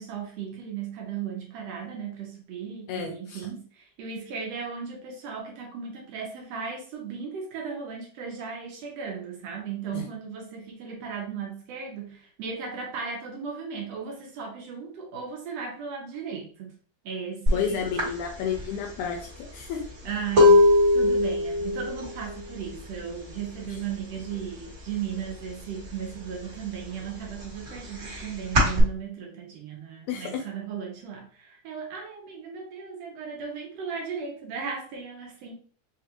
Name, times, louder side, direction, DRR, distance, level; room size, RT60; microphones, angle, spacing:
voice 1, 0.0-16.7 17.0-17.9 20.0-20.6 20.9-35.5, right 6 dB, 70° right, 0 dB, 1.6 m, -36 dB
voice 2, 2.9-3.4 9.9-10.0 17.5-19.9 23.7-23.8 30.1-30.4, left 7 dB, 80° left, 2 dB, 1.9 m, -31 dB
sound 1, 17.5-17.6 18.0-23.7 23.9-24.4 24.7-25.8 26.2-28.8, left 2 dB, 40° right, 1.1 m, -22 dB
4.8 x 2.4 x 2.9 m, 0.43 s
omnidirectional pair, 3.6 m